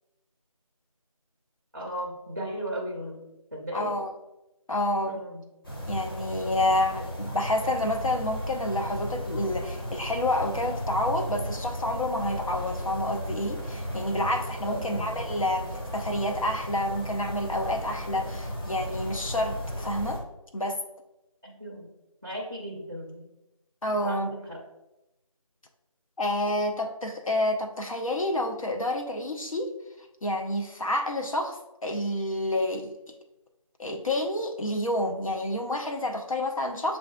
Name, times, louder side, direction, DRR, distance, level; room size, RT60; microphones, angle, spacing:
voice 1, 1.7-4.0 5.0-5.4 14.7-15.1 21.4-21.9 22.2-23.3 24.0-24.6, equal, 30° right, -3 dB, 0.5 m, -36 dB
voice 2, 3.7-4.1 4.7-5.3 5.9-20.2 20.5-20.8 23.8-24.3 26.2-29.7 30.2-31.6 31.8-32.9 33.8-37.0, left 1 dB, 65° left, 3 dB, 0.6 m, -29 dB
sound 1, 5.6-20.2, equal, 40° left, 0.9 m, -35 dB
7.3 x 2.5 x 2.2 m, 0.94 s
figure-of-eight pair, 170°, 18 cm